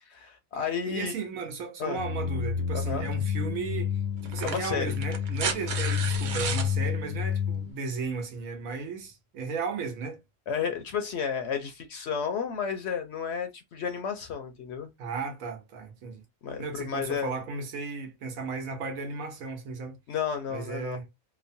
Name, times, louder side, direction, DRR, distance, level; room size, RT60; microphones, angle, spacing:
voice 1, 0.0-1.1 1.8-2.0 2.7-3.1 4.4-4.9 10.5-14.9 16.4-17.4 20.1-21.0, left 7 dB, 65° left, 0.7 m, -32 dB
voice 2, 0.9-3.9 4.2-10.2 15.0-16.2 16.6-20.0 20.5-21.1, right 4 dB, 80° right, 1.2 m, -35 dB
sound 1, 2.0-7.7, left 7 dB, 90° left, 1.1 m, -30 dB
sound 2, 3.1-3.2 4.2-6.7 8.2-8.3, right 5 dB, 60° right, 0.5 m, -33 dB
2.9 x 2.1 x 2.6 m
omnidirectional pair, 1.4 m